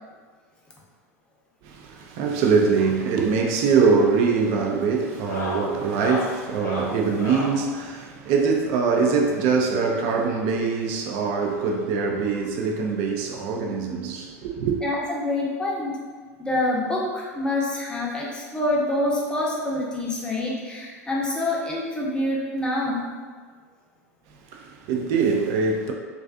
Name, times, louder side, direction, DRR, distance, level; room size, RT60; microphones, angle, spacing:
voice 1, 1.6-14.8 24.5-25.9, right 5 dB, 55° right, 0.4 m, -23 dB
sound 1, 3.7-3.9 4.2-4.5 5.1-7.6 8.9-10.3 11.3-11.4 11.6-11.8 12.2-12.3 13.6-13.7 15.0-15.1, left 1 dB, 90° left, 0.6 m, -35 dB
voice 2, 14.8-15.9 16.4-23.0, left 1 dB, 10° left, 0.6 m, -26 dB
2.4 x 2.3 x 2.3 m
hypercardioid pair, 90°, 8 cm